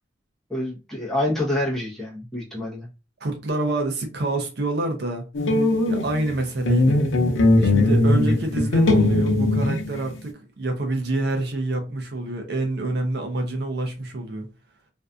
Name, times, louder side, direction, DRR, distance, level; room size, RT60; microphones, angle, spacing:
voice 1, 0.5-2.9, left 1 dB, ahead, 0.7 m, -27 dB
voice 2, 3.2-5.2 5.9-7.0 7.6-14.5, right 2 dB, 55° right, 0.5 m, -27 dB
sound 1, 5.3-6.4 6.7-10.2, left 2 dB, 90° left, 0.6 m, -20 dB
2.5 x 2.3 x 2.3 m
head